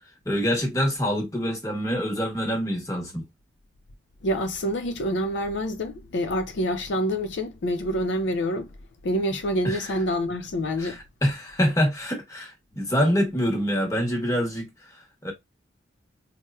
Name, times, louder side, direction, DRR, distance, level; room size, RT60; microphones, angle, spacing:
voice 1, 0.2-3.2 9.6-9.8 10.8-14.9 15.2-15.3, equal, 15° left, 0.9 m, -25 dB
voice 2, 4.2-8.7 9.0-11.0, equal, 75° left, 0.5 m, -27 dB
4.2 x 2.1 x 2.3 m
head